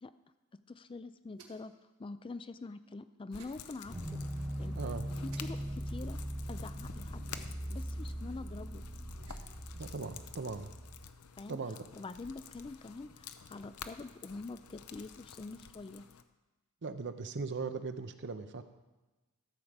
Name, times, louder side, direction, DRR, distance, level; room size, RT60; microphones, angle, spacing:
voice 1, 0.7-1.7 2.0-4.2 4.6-4.8 5.2-6.2 6.5-7.2 7.7-8.8 11.4-11.6 11.9-16.0, left 3 dB, 25° left, 12 dB, 0.4 m, -45 dB
sound 1, 1.3-1.8 3.4-3.6 5.3-5.4 7.3-7.7 9.1-9.6, right 5 dB, 80° right, 1.5 m, -57 dB
sound 2, 3.3-16.2, left 7 dB, 75° left, 0.6 m, -51 dB
sound 3, 3.8-11.0, equal, 10° right, 2.6 m, -40 dB
voice 2, 4.7-5.1 9.7-10.7 11.5-11.8 16.8-18.6, right 4 dB, 55° right, 9 dB, 0.7 m, -39 dB
12.5 x 5.0 x 7.2 m, 1.2 s
head